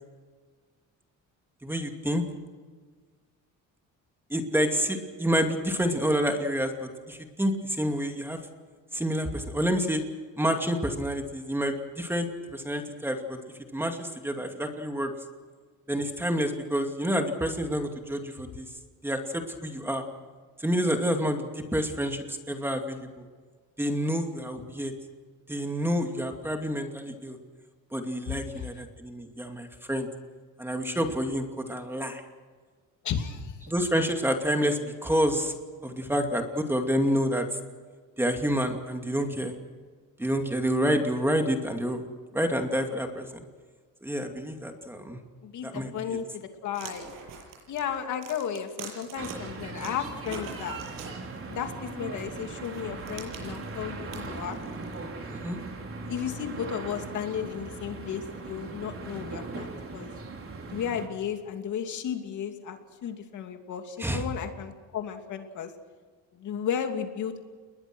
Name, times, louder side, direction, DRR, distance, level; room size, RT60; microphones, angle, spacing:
voice 1, 1.6-2.2 4.3-8.4 8.9-10.0 10.4-13.4 13.7-15.1 15.9-18.7 19.0-20.0 20.6-23.2 23.8-24.9 25.5-27.4 27.9-30.1 30.6-31.4 31.7-32.2 33.7-35.5 35.8-37.5 38.2-39.5 40.2-42.0 42.3-43.3 44.0-45.2 45.6-46.2 55.3-55.6 64.0-64.3, equal, 5° right, 4 dB, 2.6 m, -28 dB
voice 2, 28.3-28.7 33.0-33.6 45.4-47.1 47.7-50.8 51.5-54.6 56.1-60.1 60.7-65.7 66.3-67.4, left 8 dB, 65° left, 5 dB, 2.7 m, -34 dB
sound 1, 46.7-49.3 49.8-51.5 52.3-55.0, right 6 dB, 80° right, 7.5 m, -44 dB
sound 2, 49.1-61.1, right 3 dB, 40° right, 4.6 m, -39 dB
30.0 x 21.0 x 6.3 m, 1.5 s
cardioid pair, 140°, 32 cm